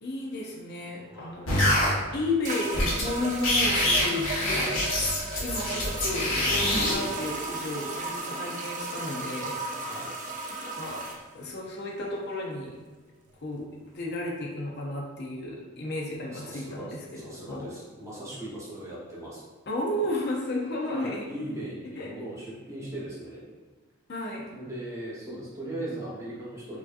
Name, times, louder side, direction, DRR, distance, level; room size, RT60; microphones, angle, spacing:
voice 1, 0.0-4.8 5.4-10.0 10.5-11.0 11.3-12.7 13.4-17.7 19.7-21.3 22.0-22.1 24.1-24.5, left 2 dB, 55° left, -2 dB, 0.6 m, -33 dB
voice 2, 1.1-1.5 4.5-4.8 9.8-10.1 16.3-19.4 20.9-23.4 24.5-26.8, right 1 dB, 15° right, -7 dB, 0.9 m, -39 dB
sound 1, 1.5-1.9 2.7-3.0 3.3-6.9, left 1 dB, 70° left, 1.0 m, -25 dB
sound 2, 2.4-11.2, right 3 dB, 40° right, 0.5 m, -35 dB
4.7 x 2.7 x 2.4 m, 1.3 s
head